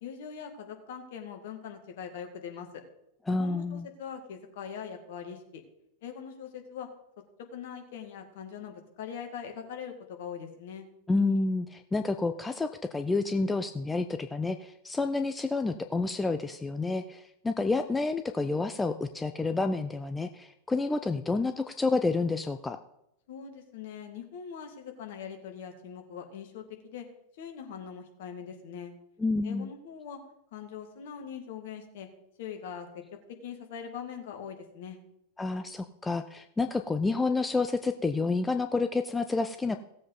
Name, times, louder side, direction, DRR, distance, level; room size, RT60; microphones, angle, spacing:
voice 1, 0.0-2.7 3.3-5.6 6.0-6.9 7.5-10.9 23.3-27.1 27.4-28.9 29.4-30.2 30.5-32.1 32.4-32.9 33.4-35.0, left 7 dB, 55° left, 5 dB, 1.9 m, -42 dB
voice 2, 3.3-3.9 11.1-22.8 29.2-29.7 35.4-39.8, left 3 dB, 10° left, 8 dB, 0.5 m, -29 dB
17.0 x 7.6 x 3.9 m, 0.82 s
figure-of-eight pair, 90°, 0 cm